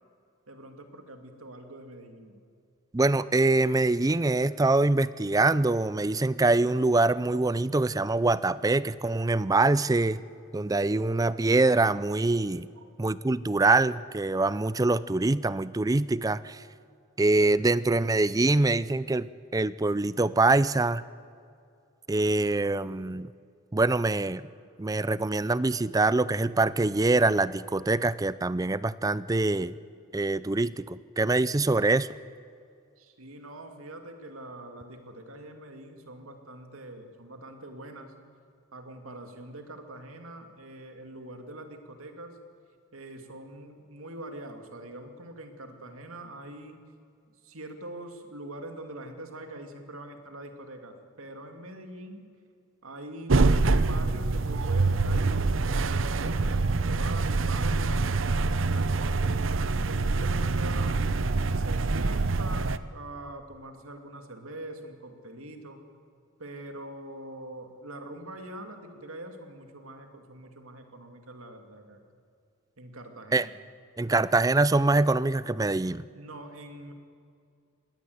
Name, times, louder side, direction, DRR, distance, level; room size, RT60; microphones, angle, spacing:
voice 1, 0.5-2.4 12.8-12.9 33.0-38.1 38.7-42.4 42.9-46.8 47.4-52.3 52.8-59.4 59.8-61.0 61.4-65.8 66.4-72.0 72.8-73.5 76.1-76.9, right 1 dB, 80° right, 5 dB, 2.5 m, -43 dB
voice 2, 2.9-10.2 10.5-12.7 13.0-16.6 17.2-19.3 19.5-21.0 22.1-23.3 23.7-24.5 24.8-29.7 30.1-32.1 73.3-73.5 74.0-76.0, right 2 dB, 15° right, 17 dB, 0.4 m, -24 dB
sound 1, 53.3-62.8, right 3 dB, 60° right, 0.7 m, -25 dB
21.0 x 18.0 x 8.0 m, 2.4 s
head